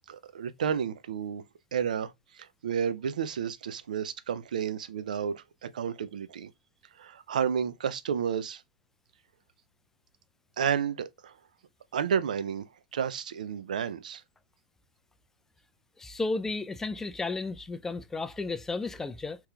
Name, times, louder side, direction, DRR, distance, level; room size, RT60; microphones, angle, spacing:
voice 1, 0.1-1.4 1.7-6.5 7.0-8.6 10.6-11.3 11.9-12.6 12.9-14.2, right 7 dB, 80° right, 0.4 m, -31 dB
voice 2, 16.0-19.4, left 3 dB, 10° left, 0.3 m, -33 dB
3.5 x 2.9 x 2.3 m
hypercardioid pair, 110°, 4 cm